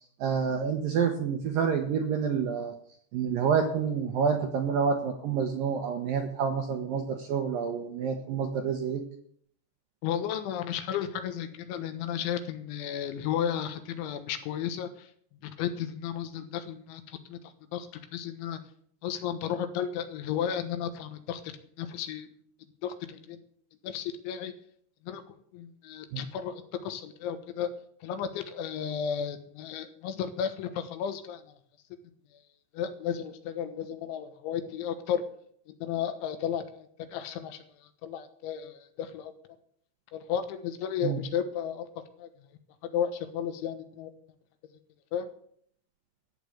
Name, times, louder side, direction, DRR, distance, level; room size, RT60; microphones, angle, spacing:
voice 1, 0.2-2.7 3.1-9.0 26.1-26.2 41.0-41.2, right 6 dB, 70° right, 4 dB, 2.2 m, -28 dB
voice 2, 10.0-15.1 15.4-17.4 17.7-18.6 19.0-22.4 22.8-23.4 23.8-24.5 25.0-27.7 28.0-31.6 32.7-35.2 35.7-37.6 38.0-39.3 40.1-42.3 42.9-44.1 45.1-45.3, left 8 dB, 80° left, 9 dB, 3.6 m, -33 dB
13.5 x 8.5 x 8.0 m, 0.63 s
omnidirectional pair, 5.4 m